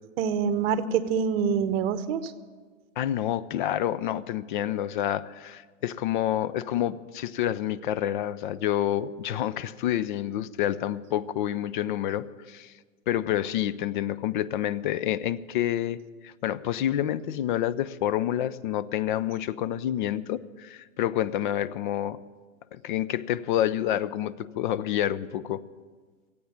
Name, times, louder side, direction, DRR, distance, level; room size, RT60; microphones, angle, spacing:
voice 1, 0.2-2.3, right 7 dB, 50° right, 12 dB, 1.0 m, -26 dB
voice 2, 3.0-12.7 13.1-22.2 22.7-25.6, left 11 dB, 40° left, 16 dB, 0.5 m, -28 dB
15.5 x 8.6 x 8.6 m, 1.4 s
hypercardioid pair, 135°, 40 cm